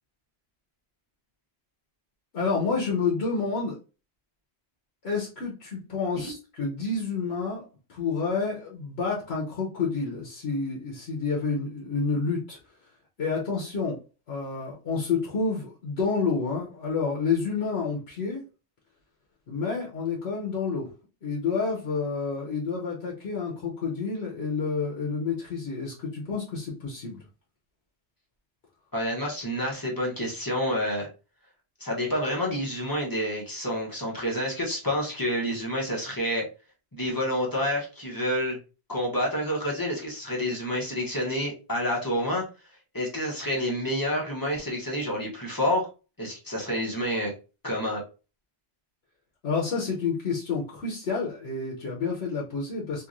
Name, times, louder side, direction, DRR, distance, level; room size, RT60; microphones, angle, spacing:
voice 1, 2.3-3.8 5.0-7.6 7.9-12.6 13.2-14.0 14.3-18.4 19.5-20.9 21.2-27.2 49.4-53.1, left 4 dB, 80° left, -3 dB, 1.1 m, -29 dB
voice 2, 28.9-31.1 31.8-36.4 36.9-38.6 38.9-42.4 42.9-45.9 46.2-47.3 47.6-48.0, equal, 20° left, -3 dB, 0.9 m, -28 dB
3.0 x 2.7 x 2.5 m, 0.33 s
omnidirectional pair, 1.1 m